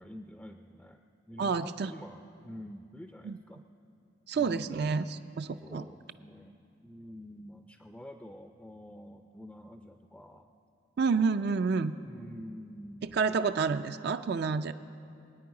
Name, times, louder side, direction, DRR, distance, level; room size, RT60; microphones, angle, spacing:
voice 1, 0.0-3.6 4.3-5.0 5.6-10.5 12.1-13.6, left 1 dB, 5° left, 5 dB, 0.4 m, -47 dB
voice 2, 1.4-1.9 3.2-3.4 4.3-5.0 5.4-5.8 11.0-11.9 13.0-14.7, right 5 dB, 55° right, 10 dB, 0.4 m, -29 dB
24.5 x 9.3 x 4.8 m, 2.5 s
head